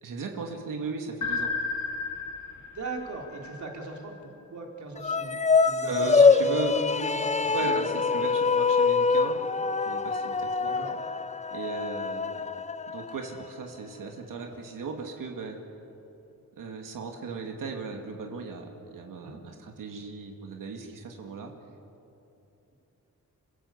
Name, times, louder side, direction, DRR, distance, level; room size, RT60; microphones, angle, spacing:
voice 1, 0.0-1.5 5.9-6.8 7.4-10.7 11.5-12.5 12.9-15.6 16.6-21.5, right 4 dB, 85° right, 2 dB, 2.3 m, -37 dB
sound 1, 1.2-4.1, left 4 dB, 70° left, 2.2 m, -33 dB
voice 2, 2.7-8.1 10.6-11.0 19.2-19.4, right 3 dB, 65° right, 0 dB, 3.9 m, -39 dB
sound 2, 5.0-13.5, left 4 dB, 20° left, 0.5 m, -24 dB
28.5 x 16.0 x 8.2 m, 2.9 s
wide cardioid pair, 135°, 31 cm